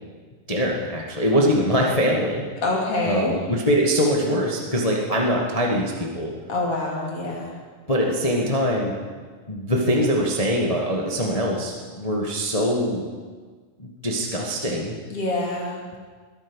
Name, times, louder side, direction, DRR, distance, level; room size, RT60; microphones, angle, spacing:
voice 1, 0.5-2.4 3.1-6.3 7.9-8.9 9.5-13.1 13.8-15.0, equal, 75° left, -1 dB, 0.3 m, -23 dB
voice 2, 2.6-3.4 6.5-7.6 15.1-15.8, left 2 dB, 45° left, -2 dB, 3.4 m, -26 dB
20.5 x 8.9 x 6.3 m, 1.5 s
omnidirectional pair, 3.8 m